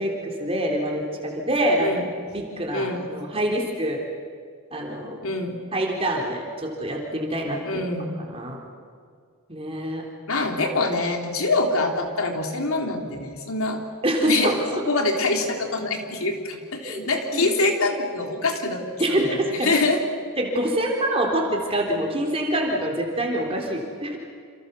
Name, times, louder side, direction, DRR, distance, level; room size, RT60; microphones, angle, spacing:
voice 1, 0.0-1.9 2.3-4.0 4.7-5.2 5.7-7.8 8.2-8.7 9.5-10.0 14.0-14.6 16.8-17.0 17.3-17.5 19.0-19.7 20.4-24.2, right 1 dB, 25° right, 0 dB, 3.6 m, -25 dB
voice 2, 2.7-3.0 5.2-5.6 7.7-8.1 10.3-13.8 14.3-14.6 14.9-18.8 19.1-20.0, left 2 dB, 70° left, 3 dB, 3.6 m, -25 dB
28.5 x 27.5 x 6.9 m, 2.1 s
head